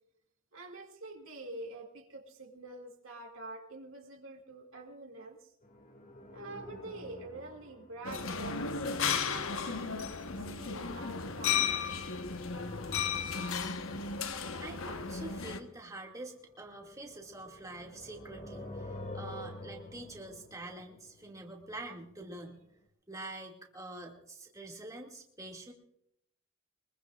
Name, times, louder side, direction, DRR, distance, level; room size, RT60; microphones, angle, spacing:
voice 1, 0.5-5.5 6.3-9.9 10.4-11.7, right 2 dB, 75° right, 1 dB, 2.5 m, -46 dB
sound 1, 5.6-8.7 12.1-13.8 16.1-22.2 22.5-22.6, left 1 dB, 40° left, 2.3 m, -48 dB
sound 2, 8.0-15.6, left 6 dB, 75° left, 1.2 m, -34 dB
voice 2, 14.6-18.9 19.1-22.6 23.1-25.7, right 2 dB, 15° right, 0 dB, 2.3 m, -46 dB
24.0 x 22.0 x 2.5 m, 0.74 s
head